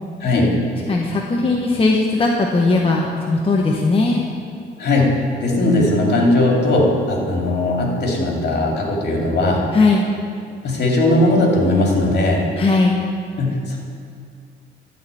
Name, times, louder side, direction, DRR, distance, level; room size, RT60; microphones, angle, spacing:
voice 1, 0.2-0.6 4.8-9.6 10.6-12.5 13.4-13.8, left 1 dB, 55° left, -1 dB, 2.5 m, -18 dB
voice 2, 0.9-4.2 9.7-10.0 12.6-13.0, left 3 dB, 30° left, -1 dB, 0.9 m, -18 dB
13.0 x 4.3 x 8.2 m, 2.3 s
cardioid pair, 90°, 20 cm